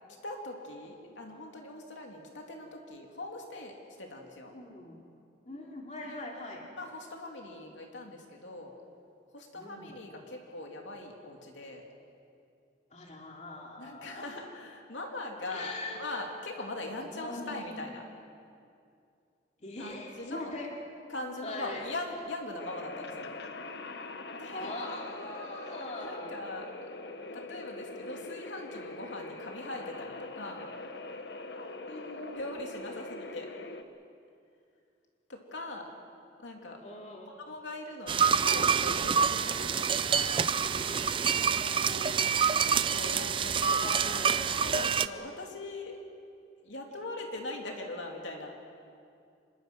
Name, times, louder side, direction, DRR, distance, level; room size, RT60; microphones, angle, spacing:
voice 1, 0.2-3.7 4.0-4.5 6.0-6.3 6.7-8.7 9.3-11.8 13.8-18.0 19.8-20.5 21.1-23.3 24.3-24.7 26.0-26.7 27.3-30.7 32.3-33.5 35.3-35.9 36.4-36.8 37.4-40.4 42.6-44.0 44.6-46.0 46.6-48.5, left 2 dB, 90° left, 1 dB, 3.0 m, -41 dB
voice 2, 4.5-5.0 5.4-6.6 9.5-10.0 12.9-14.4 15.5-16.2 17.1-18.0 19.6-20.7 21.4-21.9 24.5-26.4 31.9-32.3 36.8-37.5 41.5-42.1 43.7-44.4 47.0-47.1, left 2 dB, 40° left, -1 dB, 2.8 m, -42 dB
sound 1, 22.6-33.8, left 2 dB, 65° left, 1.2 m, -43 dB
sound 2, 38.1-45.1, right 6 dB, 30° right, 0.4 m, -27 dB
26.5 x 22.5 x 6.2 m, 2.4 s
head